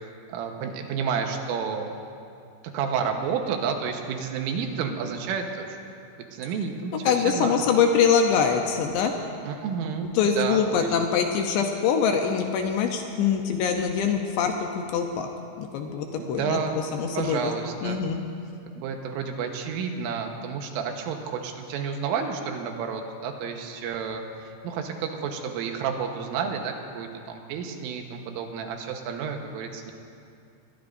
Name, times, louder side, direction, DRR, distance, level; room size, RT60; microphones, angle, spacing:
voice 1, 0.3-2.0 2.7-5.8 6.2-7.7 9.4-10.9 16.2-18.0 18.8-29.9, right 6 dB, 85° right, 3 dB, 3.7 m, -31 dB
voice 2, 7.1-9.1 10.1-15.3 15.6-16.6 16.9-17.4 17.8-18.2, left 6 dB, 75° left, 3 dB, 2.7 m, -24 dB
23.5 x 21.0 x 2.6 m, 2.5 s
omnidirectional pair, 5.7 m